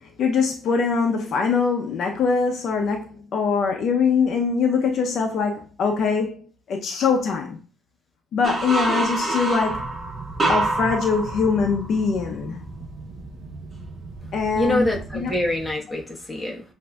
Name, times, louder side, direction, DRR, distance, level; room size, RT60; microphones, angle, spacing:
voice 1, 0.2-6.4 6.7-7.6 8.3-9.9 10.5-12.6 14.3-15.3, left 5 dB, 55° left, 0.6 m, -23 dB
sound 1, 8.4-12.0, right 2 dB, 25° right, 1.4 m, -26 dB
sound 2, 9.7-15.7, right 3 dB, 55° right, 0.6 m, -37 dB
voice 2, 14.6-16.6, left 1 dB, 10° left, 1.1 m, -25 dB
7.3 x 2.6 x 2.3 m
cardioid pair, 130°, 0 cm